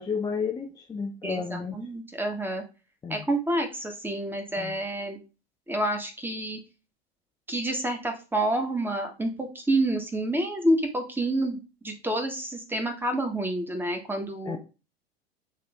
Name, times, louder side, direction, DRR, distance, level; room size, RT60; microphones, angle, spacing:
voice 1, 0.0-1.7 3.0-3.2 4.6-4.7 14.5-14.6, left 5 dB, 10° left, 0.6 m, -32 dB
voice 2, 1.2-2.6 3.1-5.2 5.7-6.6 7.5-14.6, right 1 dB, 5° right, 1.4 m, -28 dB
8.6 x 3.1 x 3.6 m
figure-of-eight pair, 80°, 32 cm